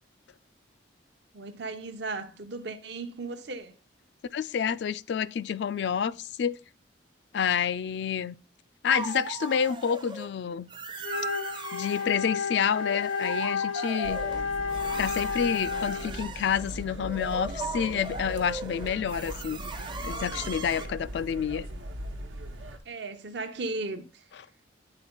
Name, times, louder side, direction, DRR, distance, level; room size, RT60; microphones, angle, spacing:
voice 1, 1.3-3.7 20.7-21.0 22.8-24.3, right 3 dB, 60° right, 0.7 m, -36 dB
voice 2, 4.3-6.6 7.3-8.4 8.8-10.7 11.7-14.2 15.0-21.7, left 7 dB, 60° left, 0.3 m, -29 dB
sound 1, 8.9-10.3 10.7-12.1 12.6-20.9, right 3 dB, 25° right, 0.5 m, -38 dB
Wind instrument woodwind instrument, 11.0-16.2, left 5 dB, 90° left, 1.0 m, -31 dB
sound 2, 14.0-22.8, right 1 dB, 90° right, 1.1 m, -40 dB
8.9 x 3.8 x 4.3 m
head